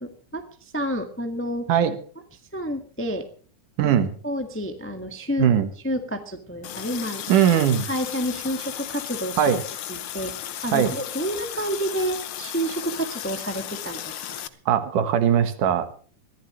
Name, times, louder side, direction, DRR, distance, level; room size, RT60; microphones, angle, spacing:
voice 1, 0.0-1.7 2.5-3.3 3.8-4.0 4.2-5.5 5.8-7.2 7.8-9.6 9.9-14.4, equal, 10° left, 5 dB, 0.7 m, -29 dB
voice 2, 3.8-4.1 5.4-5.7 7.3-7.8 9.4-9.6 10.7-10.9 14.7-15.9, right 9 dB, 80° right, 9 dB, 3.0 m, -20 dB
Water tap faucet, 6.6-14.5, left 11 dB, 75° left, 1.2 m, -35 dB
22.5 x 15.0 x 3.1 m, 0.43 s
omnidirectional pair, 3.6 m